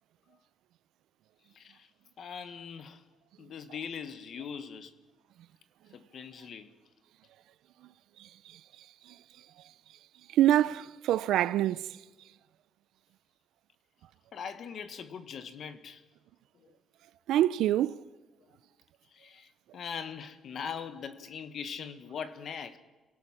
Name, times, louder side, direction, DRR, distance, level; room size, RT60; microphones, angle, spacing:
voice 1, 1.5-1.9 2.2-3.0 3.4-4.9 5.9-6.7 14.3-16.0 16.5-16.7 18.4-18.5 19.1-22.8, left 7 dB, 50° left, 1.5 m, -41 dB
voice 2, 10.3-11.8 17.3-18.0, right 12 dB, 85° right, 0.6 m, -25 dB
27.5 x 17.5 x 6.1 m
cardioid pair, 155°, 0 cm